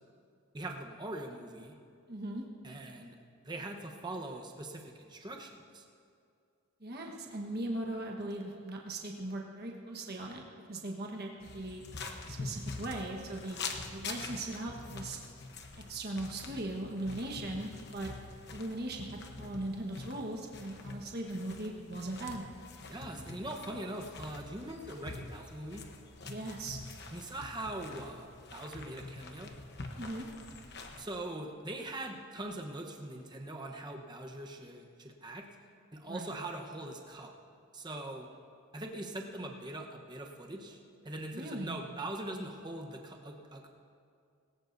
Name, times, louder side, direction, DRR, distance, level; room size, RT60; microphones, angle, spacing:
voice 1, 0.5-1.8 2.6-3.2 3.4-5.9 22.9-25.8 27.1-29.5 31.0-35.5 35.9-37.3 37.7-38.3 38.7-43.7, right 1 dB, 20° right, 2 dB, 1.0 m, -42 dB
voice 2, 2.1-2.4 6.8-11.8 12.2-13.6 13.9-15.2 15.9-18.1 18.5-22.4 26.3-26.8 30.0-30.2 36.1-36.3 41.3-41.8, right 1 dB, 45° right, 0 dB, 1.3 m, -39 dB
sound 1, 11.4-31.0, left 3 dB, 50° left, 1.0 m, -45 dB
19.5 x 18.0 x 2.7 m, 2.4 s
head